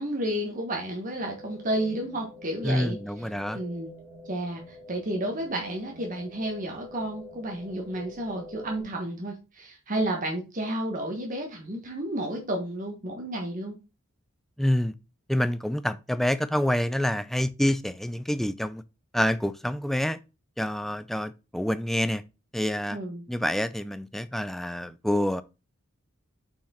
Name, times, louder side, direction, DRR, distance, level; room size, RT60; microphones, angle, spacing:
voice 1, 0.0-3.0 3.5-3.9 4.3-13.7 22.9-23.2, right 1 dB, 40° right, 1.3 m, -31 dB
sound 1, 1.1-8.8, left 1 dB, 20° right, 2.5 m, -47 dB
voice 2, 2.6-3.6 14.6-14.9 15.3-18.8 19.1-20.2 20.6-22.2 22.5-23.0 23.3-25.4, equal, ahead, 0.3 m, -27 dB
5.8 x 4.8 x 4.2 m
head